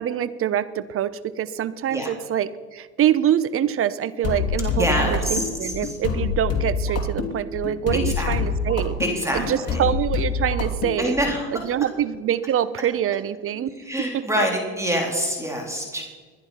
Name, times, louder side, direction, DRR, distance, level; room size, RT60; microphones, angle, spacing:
voice 1, 0.0-9.0 9.3-11.1 11.5-13.7 14.1-14.2, right 10 dB, 40° right, 16 dB, 0.9 m, -25 dB
sound 1, 4.2-11.4, left 5 dB, 45° left, 2.8 m, -26 dB
voice 2, 4.7-6.0 7.9-8.4 9.0-9.8 11.0-11.7 13.5-16.0, equal, 10° right, 1 dB, 3.6 m, -26 dB
21.5 x 10.5 x 5.8 m, 1.5 s
supercardioid pair, 105°, 33 cm